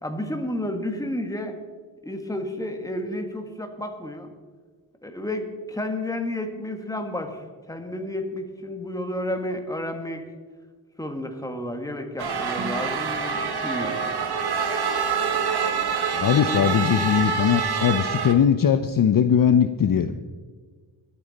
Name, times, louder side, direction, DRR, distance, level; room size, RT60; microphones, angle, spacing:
voice 1, 0.0-1.6 2.0-4.3 5.0-10.2 11.0-14.1 16.4-16.7, left 1 dB, 10° left, 5 dB, 1.5 m, -31 dB
sound 1, 12.2-18.3, right 6 dB, 55° right, 1.3 m, -26 dB
voice 2, 16.1-20.2, left 8 dB, 45° left, 10 dB, 0.6 m, -20 dB
21.5 x 8.8 x 4.1 m, 1.5 s
wide cardioid pair, 120°, 45 cm